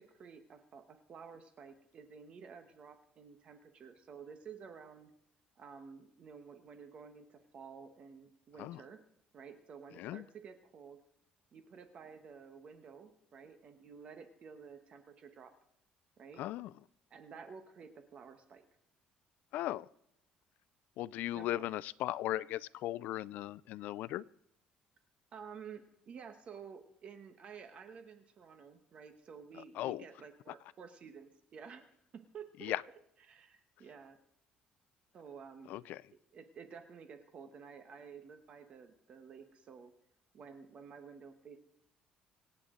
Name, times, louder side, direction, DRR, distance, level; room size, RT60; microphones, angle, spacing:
voice 1, 0.0-5.1 5.6-9.0 9.3-11.0 11.5-15.5 16.2-16.4 17.1-18.6 21.3-21.7 25.3-31.8 32.1-32.7 33.2-34.2 35.1-35.8 36.3-39.9 40.3-41.6, right 6 dB, 40° right, 8 dB, 1.1 m, -52 dB
voice 2, 16.4-16.7 19.5-19.9 21.0-24.2 29.7-30.0 32.6-32.8 35.7-36.0, left 14 dB, 70° left, 20 dB, 0.4 m, -37 dB
25.5 x 8.6 x 3.8 m, 0.76 s
cardioid pair, 155°, 3 cm